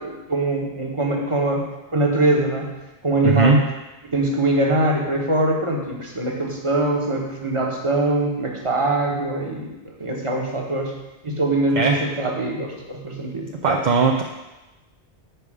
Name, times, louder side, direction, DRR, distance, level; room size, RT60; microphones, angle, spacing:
voice 1, 0.0-1.6 1.9-2.7 3.0-3.6 4.0-10.9 11.2-13.8, right 2 dB, 30° right, 0 dB, 1.3 m, -23 dB
voice 2, 3.2-3.6 11.7-12.0 13.6-14.2, right 4 dB, 55° right, 2 dB, 0.6 m, -18 dB
9.1 x 5.0 x 5.0 m, 1.0 s
omnidirectional pair, 1.2 m